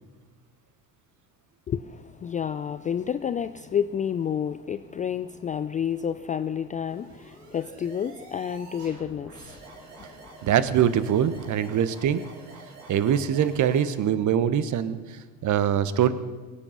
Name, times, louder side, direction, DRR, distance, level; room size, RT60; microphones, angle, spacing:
voice 1, 1.7-10.4, left 8 dB, 20° left, 12 dB, 0.4 m, -30 dB
sound 1, 6.9-14.0, right 3 dB, 75° right, 3.7 m, -47 dB
voice 2, 10.4-12.2 12.9-15.0 15.4-16.1, right 9 dB, 40° right, 14 dB, 1.1 m, -23 dB
23.0 x 8.6 x 5.7 m, 1.3 s
figure-of-eight pair, 65°, 46 cm